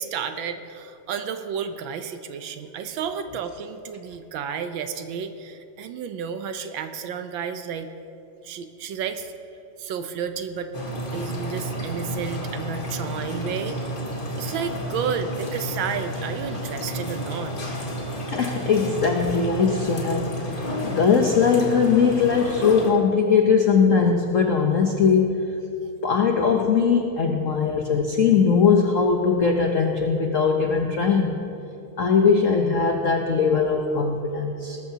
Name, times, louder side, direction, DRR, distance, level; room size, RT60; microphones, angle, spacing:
voice 1, 0.0-7.9 8.4-9.3 9.8-10.7 11.1-13.8 14.4-17.5, right 7 dB, 70° right, 8 dB, 1.3 m, -31 dB
sound 1, 10.7-22.9, equal, 30° left, 1.4 m, -31 dB
voice 2, 18.3-25.5 26.0-31.4 32.0-34.8, left 5 dB, 70° left, 3 dB, 0.7 m, -20 dB
19.5 x 13.0 x 2.8 m, 2.8 s
omnidirectional pair, 2.4 m